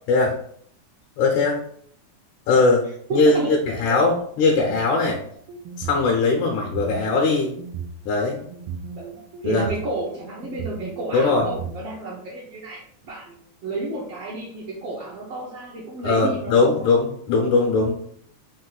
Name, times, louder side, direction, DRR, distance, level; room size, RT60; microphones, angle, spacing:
voice 1, 1.2-1.6 2.5-2.8 3.1-5.2 5.8-7.5 8.1-8.4 9.4-9.7 11.1-11.5 16.0-17.9, left 3 dB, 80° left, 0 dB, 2.0 m, -20 dB
voice 2, 3.1-3.6 3.8-4.0 9.4-13.4 13.6-16.9, right 2 dB, 70° right, -5 dB, 1.5 m, -31 dB
sound 1, 5.4-6.0 6.6-8.0 8.5-9.8 10.4-11.7, right 7 dB, 90° right, 1.4 m, -35 dB
5.4 x 2.5 x 3.9 m, 0.64 s
omnidirectional pair, 3.6 m